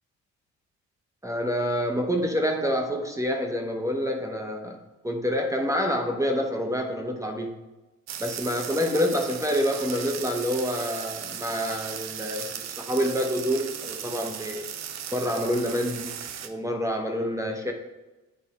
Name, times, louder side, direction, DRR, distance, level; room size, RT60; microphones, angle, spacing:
voice 1, 1.2-4.8 5.0-7.6 8.2-14.7 15.1-16.1 16.4-17.7, equal, 10° right, 3 dB, 0.9 m, -27 dB
sound 1, 8.1-16.5, right 9 dB, 60° right, 0.6 m, -37 dB
8.6 x 3.4 x 4.2 m, 1.1 s
cardioid pair, 90°, 30 cm